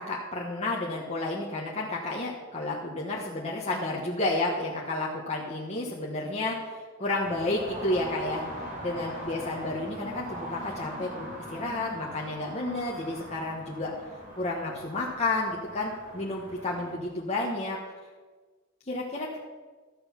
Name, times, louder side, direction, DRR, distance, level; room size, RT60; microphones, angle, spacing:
voice 1, 0.0-8.4 8.8-13.9 14.3-17.8 18.9-19.4, left 2 dB, 30° left, -3 dB, 1.3 m, -31 dB
sound 1, 7.2-16.9, equal, 40° right, 3.3 m, -42 dB
12.5 x 7.8 x 5.9 m, 1.4 s
head